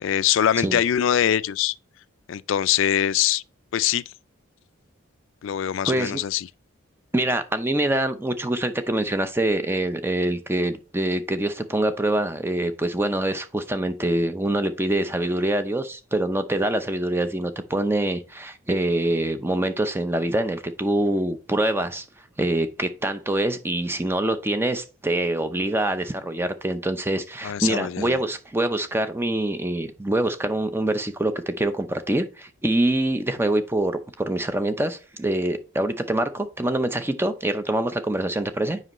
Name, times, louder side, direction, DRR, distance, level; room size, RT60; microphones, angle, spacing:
voice 1, 0.0-1.7 2.3-3.4 3.7-4.0 5.4-6.5 27.4-28.1, left 10 dB, 70° left, 0.3 m, -23 dB
voice 2, 5.9-6.2 7.1-22.0 22.4-38.8, right 1 dB, 10° right, 0.5 m, -25 dB
7.6 x 5.4 x 3.0 m
head